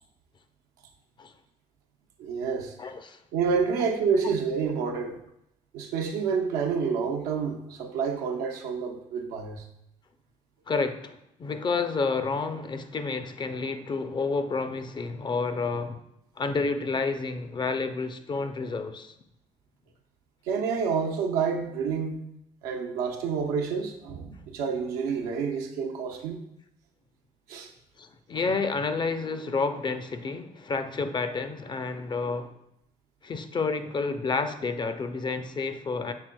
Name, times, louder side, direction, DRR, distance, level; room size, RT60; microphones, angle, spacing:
voice 1, 2.2-2.8 3.3-5.2 5.7-9.6 20.5-22.2 22.6-26.4 27.5-27.7, right 5 dB, 85° right, 0.6 m, -28 dB
voice 2, 2.8-3.2 10.7-16.0 16.4-19.1 28.0-32.5 33.2-36.1, left 4 dB, 30° left, 0.4 m, -30 dB
6.1 x 3.7 x 2.2 m
supercardioid pair, 65°, 15 cm